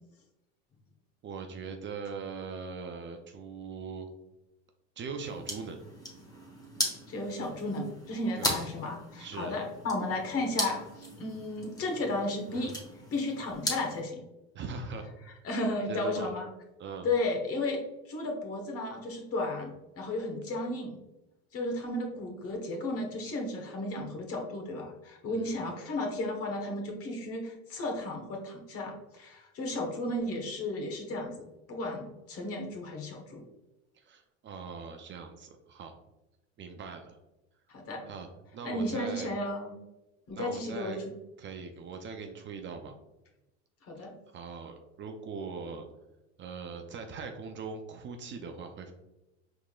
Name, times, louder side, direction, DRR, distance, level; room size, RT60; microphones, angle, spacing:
voice 1, 1.2-4.1 5.0-5.8 8.4-8.6 9.2-9.5 14.5-15.4 15.9-16.3 16.8-17.1 25.3-25.6 33.9-36.0 36.6-37.2 38.0-38.3 38.5-39.3 40.3-41.0 41.4-42.9 44.0-44.1 44.3-45.9 46.4-48.9, right 5 dB, 35° right, 4 dB, 0.5 m, -41 dB
sound 1, 5.2-14.0, left 1 dB, 10° left, 1.2 m, -38 dB
voice 2, 7.1-12.8 13.1-14.2 15.4-16.5 17.0-17.8 18.1-21.0 21.5-33.4 37.7-38.0 38.6-39.8 40.3-41.0 43.9-44.1, left 2 dB, 45° left, 1 dB, 1.2 m, -34 dB
4.6 x 3.7 x 2.3 m, 0.98 s
supercardioid pair, 105°, 34 cm